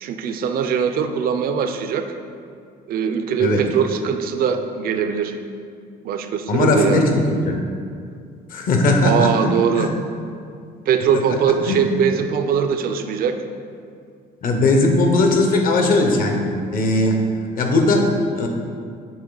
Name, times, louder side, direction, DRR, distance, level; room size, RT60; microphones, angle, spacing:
voice 1, 0.0-2.2 2.9-5.4 6.0-7.1 9.0-9.9 10.9-13.4, right 7 dB, 60° right, 8 dB, 0.5 m, -21 dB
voice 2, 6.5-7.6 8.5-9.3 9.8-9.9 11.7-11.8 14.4-16.4 16.7-17.2 17.5-18.5, left 2 dB, 55° left, 3 dB, 0.9 m, -18 dB
8.7 x 3.2 x 3.9 m, 2.3 s
cardioid pair, 110°, 17 cm